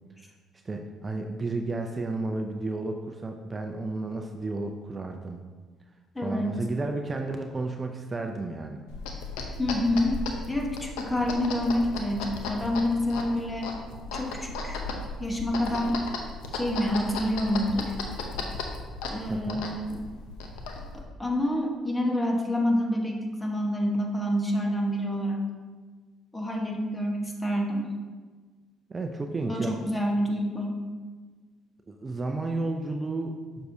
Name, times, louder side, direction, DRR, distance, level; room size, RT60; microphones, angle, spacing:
voice 1, 0.6-5.4 6.2-8.8 19.3-19.7 28.9-29.8 31.9-33.4, right 2 dB, 30° right, 4 dB, 0.5 m, -32 dB
voice 2, 6.1-6.6 9.6-13.7 14.1-14.8 15.2-16.0 16.5-17.9 19.1-20.0 20.9-25.5 26.3-27.9 29.5-30.8, left 1 dB, 15° left, 1 dB, 1.2 m, -28 dB
sound 1, 8.9-21.0, left 3 dB, 85° left, 0.7 m, -36 dB
6.7 x 6.2 x 2.7 m, 1.4 s
supercardioid pair, 70°, 0 cm